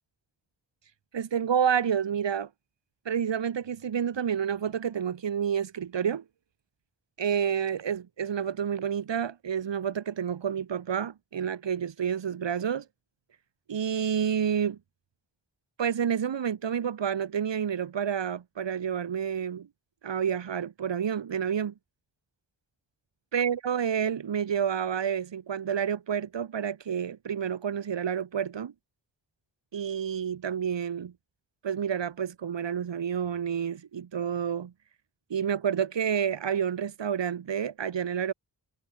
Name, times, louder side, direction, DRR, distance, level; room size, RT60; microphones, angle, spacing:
voice 1, 1.1-2.5 3.0-6.2 7.2-12.8 13.7-14.8 15.8-19.7 20.0-21.7 23.3-28.7 29.7-31.1 31.6-34.7 35.3-38.3, right 8 dB, 90° right, 1.6 m, -29 dB
wide cardioid pair, 130°, 42 cm